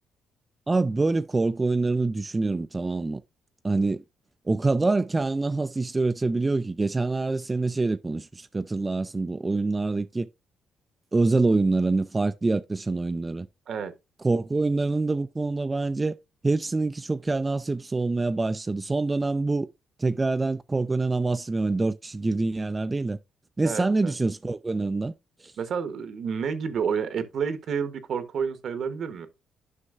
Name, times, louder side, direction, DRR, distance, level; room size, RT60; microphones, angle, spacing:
voice 1, 0.7-3.2 3.6-4.0 4.5-10.3 11.1-13.5 14.2-16.1 16.4-19.7 20.0-23.2 23.6-25.1, right 3 dB, 20° right, 0.3 m, -25 dB
voice 2, 23.6-24.1 25.6-29.3, right 6 dB, 60° right, 1.0 m, -30 dB
9.8 x 5.6 x 2.4 m
cardioid pair, 90°, 0 cm